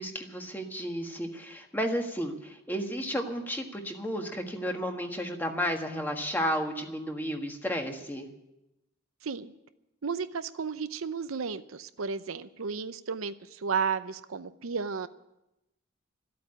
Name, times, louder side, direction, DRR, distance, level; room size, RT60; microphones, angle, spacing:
voice 1, 0.0-8.3, equal, 10° left, 3 dB, 1.5 m, -32 dB
voice 2, 9.2-9.5 10.0-15.1, right 5 dB, 85° right, 12 dB, 0.7 m, -33 dB
14.0 x 8.5 x 9.9 m, 0.92 s
head